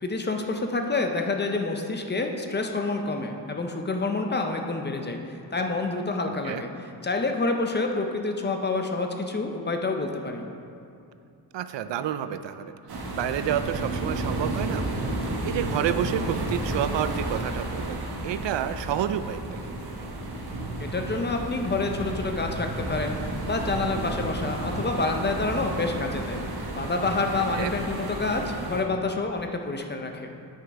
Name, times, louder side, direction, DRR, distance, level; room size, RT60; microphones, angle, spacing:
voice 1, 0.0-6.7 7.0-10.5 20.8-26.4 26.8-30.3, left 3 dB, 25° left, 4 dB, 0.5 m, -28 dB
voice 2, 11.5-14.9 15.2-19.6 27.6-27.7, right 10 dB, 90° right, 11 dB, 0.5 m, -29 dB
sound 1, 12.9-28.8, right 2 dB, 60° right, 1.1 m, -32 dB
8.5 x 6.4 x 4.7 m, 2.6 s
wide cardioid pair, 150°, 42 cm